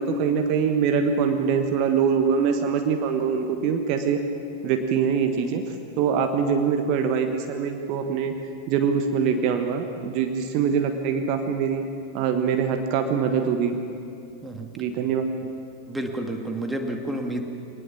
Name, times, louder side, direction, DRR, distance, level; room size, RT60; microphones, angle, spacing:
voice 1, 0.0-4.2 4.6-8.3 8.7-11.8 12.1-13.8 14.8-15.3, right 6 dB, 40° right, 5 dB, 1.6 m, -23 dB
voice 2, 15.9-17.4, right 1 dB, 5° right, 3 dB, 2.2 m, -30 dB
23.0 x 19.5 x 7.2 m, 2.5 s
figure-of-eight pair, 90°, 0 cm